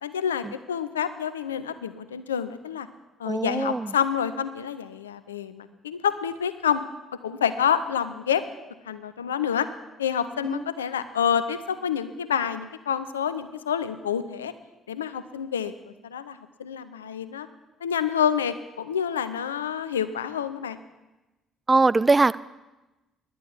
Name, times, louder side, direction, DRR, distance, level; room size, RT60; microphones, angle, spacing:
voice 1, 0.0-2.9 3.2-6.8 7.2-8.4 8.9-9.7 10.0-14.5 14.9-17.5 17.8-20.8, left 8 dB, 85° left, 13 dB, 0.5 m, -28 dB
voice 2, 3.3-3.9 10.5-10.6 21.7-22.4, right 3 dB, 25° right, 18 dB, 0.4 m, -21 dB
11.0 x 9.4 x 6.8 m, 1.1 s
figure-of-eight pair, 50°, 0 cm